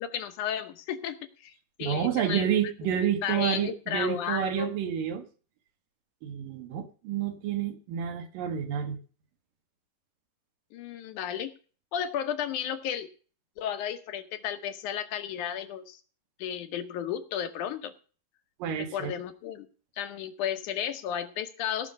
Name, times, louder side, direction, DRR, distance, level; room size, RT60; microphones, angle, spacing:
voice 1, 0.0-1.5 1.8-2.7 3.2-4.7 10.7-11.5 11.9-13.1 13.6-16.0 16.4-17.9 18.8-19.7 20.0-21.9, left 9 dB, 70° left, 9 dB, 2.3 m, -33 dB
voice 2, 1.8-5.2 6.2-9.0 18.6-19.1, right 9 dB, 80° right, 7 dB, 3.2 m, -29 dB
17.0 x 5.7 x 6.5 m, 0.38 s
omnidirectional pair, 3.8 m